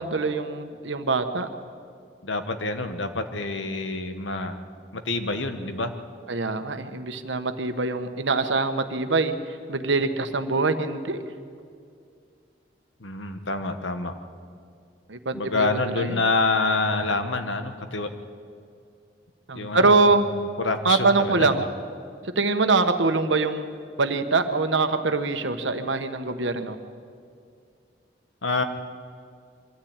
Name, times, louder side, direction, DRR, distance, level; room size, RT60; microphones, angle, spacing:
voice 1, 0.0-1.5 6.3-11.2 15.1-16.2 19.5-20.3 20.8-21.7 22.2-23.7 24.0-26.8, right 3 dB, 80° right, 8 dB, 1.2 m, -24 dB
voice 2, 2.2-4.6 5.0-5.9 13.0-14.1 15.3-18.1 19.5-21.7 28.4-28.6, left 3 dB, 90° left, 8 dB, 1.4 m, -27 dB
23.5 x 13.5 x 8.9 m, 2.3 s
head